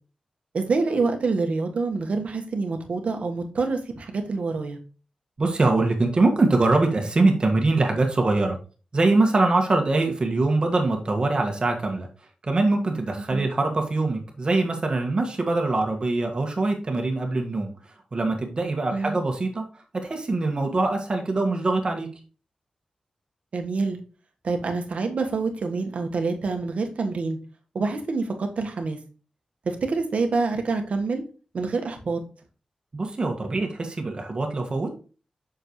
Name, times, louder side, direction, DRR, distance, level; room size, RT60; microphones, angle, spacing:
voice 1, 0.5-4.8 13.3-13.5 18.9-19.2 23.5-24.0 24.4-27.4 27.7-29.0 29.6-31.2 31.5-32.2, right 4 dB, 70° right, 4 dB, 1.4 m, -26 dB
voice 2, 5.4-8.6 8.9-12.1 12.4-17.7 18.1-19.6 19.9-22.1 32.9-34.9, right 2 dB, 40° right, 3 dB, 1.7 m, -23 dB
7.9 x 6.5 x 3.1 m, 0.36 s
wide cardioid pair, 100°, 2 cm